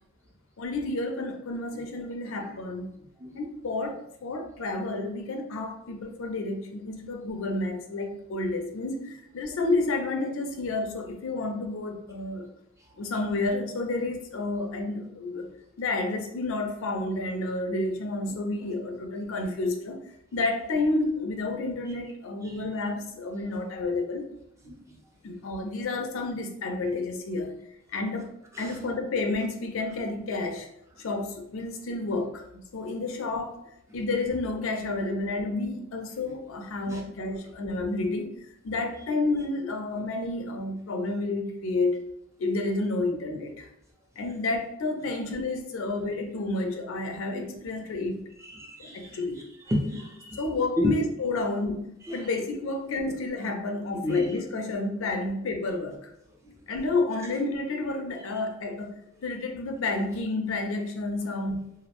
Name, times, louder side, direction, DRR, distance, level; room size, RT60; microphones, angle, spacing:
voice 1, 0.6-2.9 3.3-12.5 13.0-15.5 15.8-20.0 20.3-24.2 25.2-27.6 27.9-28.3 28.6-30.7 31.0-32.4 32.7-33.5 33.9-38.3 38.6-42.0 42.4-43.7 44.2-48.2 48.9-49.4 50.4-56.1 56.7-61.7, left 2 dB, 60° left, 4 dB, 0.4 m, -30 dB
voice 2, 48.5-49.2 49.7-50.5 50.8-50.9 51.5-51.7 52.0-52.3 54.0-54.4 56.5-56.6, left 1 dB, 15° right, -1 dB, 0.4 m, -32 dB
2.4 x 2.0 x 2.8 m, 0.77 s
head